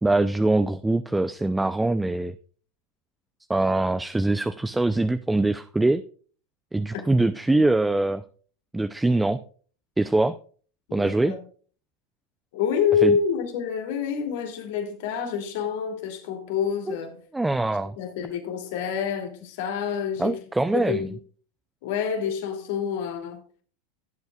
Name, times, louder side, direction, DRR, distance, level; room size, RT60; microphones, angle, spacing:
voice 1, 0.0-2.4 3.5-6.0 6.7-8.2 8.7-9.4 10.0-10.4 10.9-11.3 13.0-13.1 16.9-17.0 17.3-17.9 20.2-21.1, right 2 dB, 10° right, 0.5 m, -23 dB
voice 2, 10.9-11.4 12.5-17.2 18.0-20.4 20.7-21.2 21.8-23.4, left 7 dB, 65° left, 2.7 m, -27 dB
16.0 x 8.0 x 2.4 m
hypercardioid pair, 95°, 0 cm